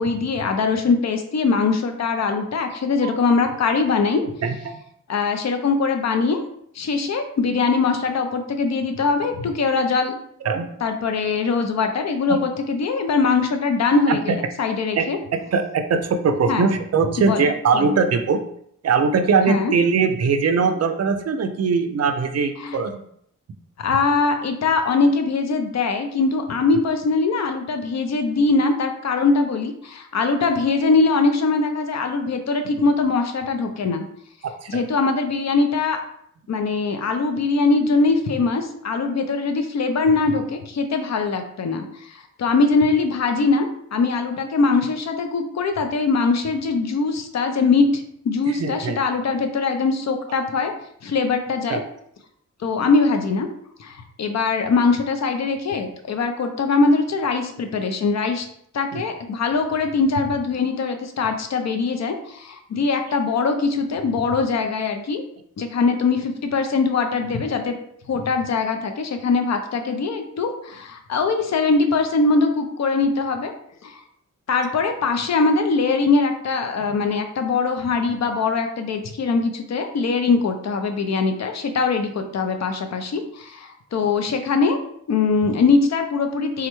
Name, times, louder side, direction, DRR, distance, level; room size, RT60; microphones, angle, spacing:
voice 1, 0.0-4.2 5.1-6.4 6.8-10.2 10.8-15.2 16.5-16.7 17.2-17.4 17.7-18.0 19.5-19.7 22.6-22.8 23.8-34.1 34.7-36.0 36.5-50.7 51.0-51.8 52.6-53.5 53.8-58.5 58.7-65.2 65.6-67.8 68.1-73.5 73.8-74.0 74.5-84.8 85.1-86.7, left 4 dB, 55° left, 6 dB, 0.5 m, -22 dB
voice 2, 4.4-4.8 10.4-10.7 12.3-12.4 14.1-14.4 15.0-15.1 15.5-18.4 18.8-23.0 34.4-34.8 48.6-49.0 51.7-51.8 58.9-59.0, right 5 dB, 50° right, 8 dB, 0.4 m, -21 dB
3.6 x 2.1 x 3.0 m, 0.69 s
cardioid pair, 75°, 33 cm